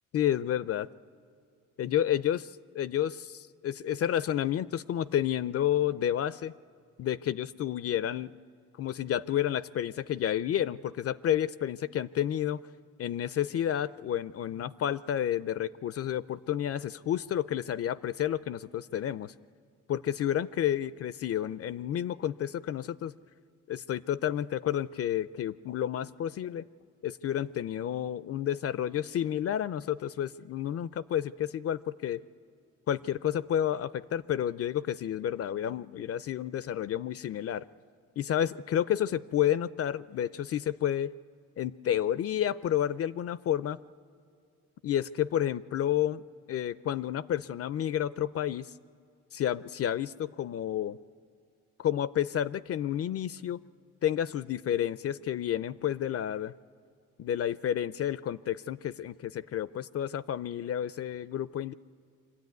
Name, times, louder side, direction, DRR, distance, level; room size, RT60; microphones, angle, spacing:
voice 1, 0.1-0.9 1.8-6.5 7.0-8.3 8.8-12.6 13.0-19.3 19.9-23.1 23.7-26.7 27.0-32.2 32.9-37.6 38.2-41.1 41.6-43.8 44.8-46.2 46.5-48.7 49.3-51.0 51.8-53.6 54.0-56.5 57.2-61.7, left 10 dB, 50° left, 17 dB, 0.5 m, -30 dB
24.5 x 13.0 x 9.4 m, 2.3 s
cardioid pair, 90°, 30 cm